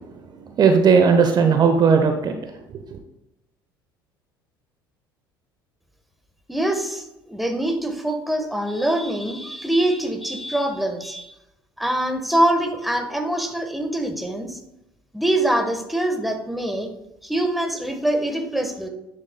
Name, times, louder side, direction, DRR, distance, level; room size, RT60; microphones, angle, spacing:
voice 1, 0.6-2.4 2.7-3.0, right 5 dB, 35° right, 6 dB, 0.8 m, -17 dB
voice 2, 6.5-11.3 11.8-14.6 15.1-16.9 17.2-18.9, right 1 dB, ahead, 4 dB, 1.3 m, -24 dB
9.7 x 8.5 x 2.2 m, 0.92 s
figure-of-eight pair, 60°, 12 cm